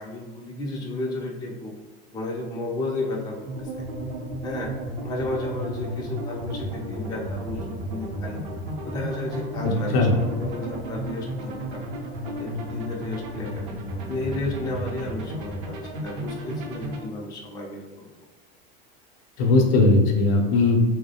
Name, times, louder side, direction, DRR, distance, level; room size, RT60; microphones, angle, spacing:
voice 1, 0.0-1.7 2.1-3.8 4.4-4.7 5.0-8.4 8.8-11.8 12.2-13.7 14.1-18.1, left 2 dB, 15° left, -2 dB, 0.3 m, -33 dB
sound 1, 3.5-17.0, equal, 60° right, 0.6 m, -33 dB
voice 2, 9.6-10.1 19.4-20.8, left 2 dB, 65° left, 2 dB, 0.6 m, -19 dB
2.2 x 2.0 x 2.7 m, 1.2 s
hypercardioid pair, 100°, 31 cm